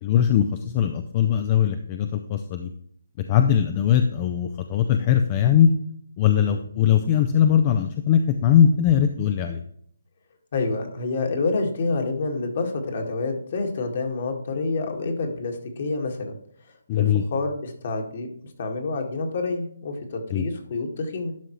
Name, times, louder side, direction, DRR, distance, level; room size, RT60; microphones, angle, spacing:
voice 1, 0.0-2.7 3.3-5.7 6.2-9.6 16.9-17.2 20.3-20.4, left 9 dB, 30° left, 7 dB, 0.5 m, -20 dB
voice 2, 10.5-16.4 16.9-18.3 18.6-21.3, left 3 dB, 50° left, 3 dB, 1.8 m, -28 dB
11.5 x 5.4 x 3.1 m, 0.64 s
hypercardioid pair, 155°, 0 cm